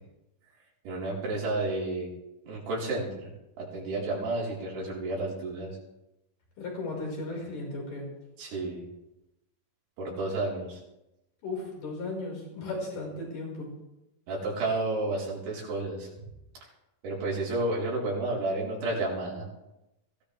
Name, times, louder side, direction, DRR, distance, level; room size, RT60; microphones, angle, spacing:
voice 1, 0.8-2.1 2.4-3.3 3.6-5.8 8.4-8.9 10.0-10.8 14.3-16.2 17.0-19.5, right 2 dB, 85° right, -5 dB, 6.3 m, -31 dB
voice 2, 6.6-8.1 11.4-13.7, left 2 dB, 55° left, -2 dB, 6.7 m, -35 dB
22.5 x 17.0 x 3.4 m, 0.92 s
omnidirectional pair, 4.6 m